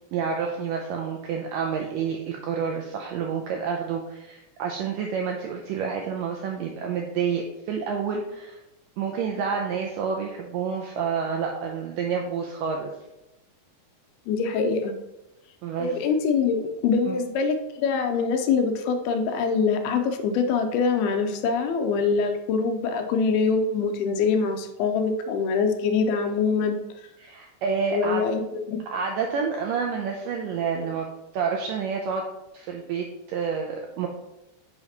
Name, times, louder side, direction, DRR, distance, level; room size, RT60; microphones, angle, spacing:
voice 1, 0.1-8.6 9.0-12.9 15.6-16.0 17.1-17.2 27.2-28.3 28.9-31.1 31.3-32.2 32.5-34.1, right 6 dB, 85° right, 1 dB, 1.9 m, -29 dB
voice 2, 14.3-14.9 15.8-26.8 27.9-28.8, left 5 dB, 80° left, 6 dB, 2.5 m, -24 dB
8.9 x 5.6 x 2.9 m, 0.92 s
omnidirectional pair, 4.6 m